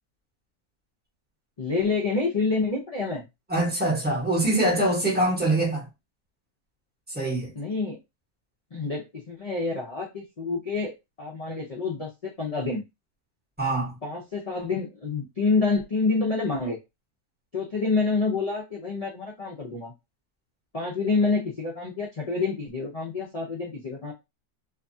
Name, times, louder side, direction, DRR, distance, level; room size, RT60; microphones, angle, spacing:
voice 1, 1.6-3.2 7.5-8.0 8.7-10.9 11.2-12.8 14.0-16.8 17.5-19.9 20.7-24.1, left 3 dB, 60° left, 0.3 m, -27 dB
voice 2, 3.5-5.9 7.1-7.5 13.6-13.9, right 1 dB, 10° right, 0.9 m, -24 dB
2.7 x 2.3 x 2.6 m
omnidirectional pair, 1.6 m